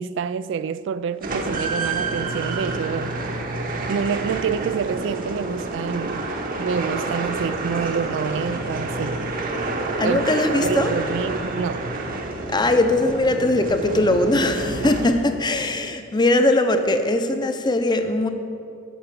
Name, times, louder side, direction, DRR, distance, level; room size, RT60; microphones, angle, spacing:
voice 1, 0.0-3.2 3.9-6.3 6.6-9.3 10.0-10.2 10.6-11.8, right 6 dB, 70° right, 0.3 m, -27 dB
sound 1, 1.2-15.5, right 2 dB, 45° right, 1.0 m, -28 dB
voice 2, 10.0-10.9 12.5-18.3, left 1 dB, 25° left, 0.6 m, -20 dB
10.0 x 5.8 x 7.5 m
head